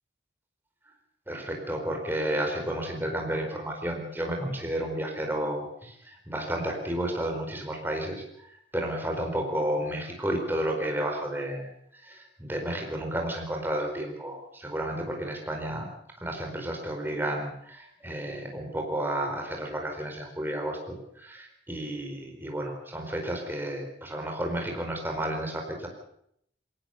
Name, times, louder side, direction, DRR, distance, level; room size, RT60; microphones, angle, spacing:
voice 1, 1.3-15.9 16.2-25.9, right 1 dB, 10° right, 2 dB, 4.6 m, -32 dB
22.0 x 19.0 x 6.7 m, 0.70 s
head